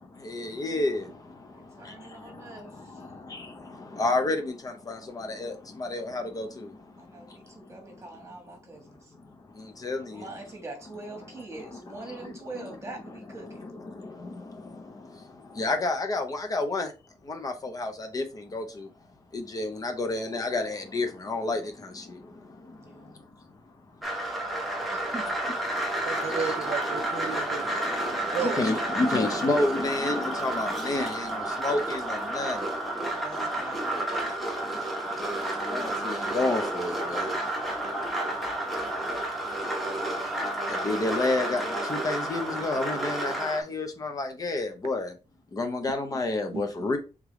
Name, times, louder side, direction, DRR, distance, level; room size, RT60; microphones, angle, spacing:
voice 1, 0.3-1.0 4.0-4.4 4.9-5.5 5.8-6.5 9.8-10.0 15.6-16.9 17.3-17.5 17.8-18.2 18.5-18.6 19.5-21.6 28.6-31.3 31.6-32.0 32.3-32.6 35.7-37.2 40.8-41.6 42.0-45.1 45.6-47.0, left 2 dB, 30° left, 0.6 m, -28 dB
voice 2, 1.5-3.1 7.0-9.1 10.1-13.7 22.7-23.1 24.9-25.3 33.1-33.9, right 2 dB, 25° right, 1.3 m, -43 dB
sound 1, 24.0-43.6, right 1 dB, ahead, 1.1 m, -31 dB
voice 3, 26.0-27.7 28.3-28.6 46.5-46.6, right 6 dB, 55° right, 0.4 m, -32 dB
3.6 x 3.3 x 3.0 m
wide cardioid pair, 150°, 12 cm